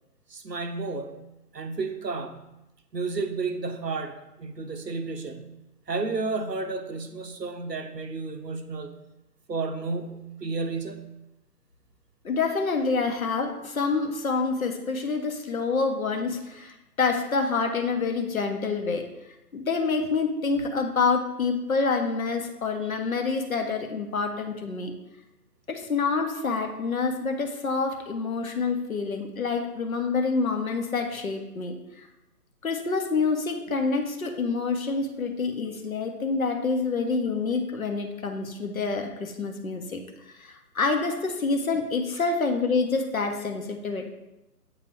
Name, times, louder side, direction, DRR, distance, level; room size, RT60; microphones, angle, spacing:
voice 1, 0.3-1.2 1.5-2.5 2.9-5.5 5.9-8.9 9.5-11.1, right 3 dB, 85° right, 7 dB, 0.8 m, -32 dB
voice 2, 12.2-19.1 19.5-24.9 25.7-31.8 32.6-40.0 40.4-44.1, left 4 dB, 60° left, 4 dB, 1.0 m, -27 dB
7.8 x 3.0 x 4.4 m, 0.96 s
figure-of-eight pair, 140°, 48 cm